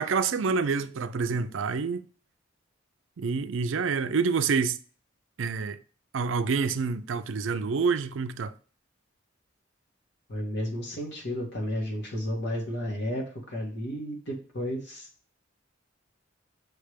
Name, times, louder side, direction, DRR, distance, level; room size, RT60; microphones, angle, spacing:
voice 1, 0.0-2.1 3.2-4.8 5.4-5.8 6.1-8.5, right 5 dB, 75° right, 0.5 m, -27 dB
voice 2, 10.3-15.1, equal, 60° left, 1.9 m, -32 dB
6.3 x 3.4 x 5.0 m
head